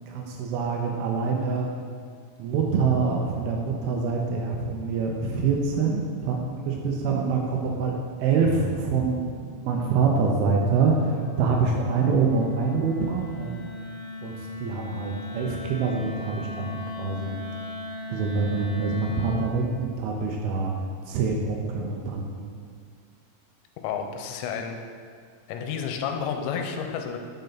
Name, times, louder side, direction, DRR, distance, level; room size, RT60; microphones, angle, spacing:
voice 1, 0.1-1.7 2.4-9.2 9.6-13.8 14.2-17.3 18.1-20.7 21.1-22.5, right 4 dB, 90° right, 1 dB, 2.1 m, -25 dB
Wind instrument woodwind instrument, 8.0-19.6, left 2 dB, 50° left, 2.7 m, -39 dB
voice 2, 23.8-24.8 25.5-27.2, left 7 dB, 85° left, 4 dB, 2.8 m, -30 dB
9.2 x 5.3 x 3.9 m, 2.1 s
omnidirectional pair, 5.2 m